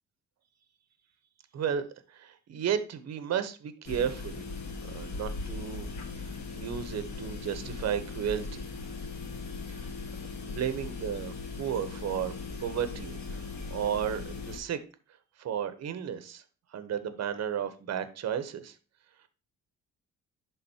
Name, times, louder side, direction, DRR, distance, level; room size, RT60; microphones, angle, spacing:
voice 1, 1.5-4.4 4.9-5.9 6.1-8.7 9.7-9.9 10.4-12.3 12.6-14.8 15.4-16.4 16.7-18.8, right 8 dB, 60° right, 11 dB, 1.0 m, -33 dB
sound 1, 3.8-14.6, left 4 dB, 70° left, 1.6 m, -39 dB
11.0 x 3.8 x 2.8 m, 0.35 s
cardioid pair, 90°, 30 cm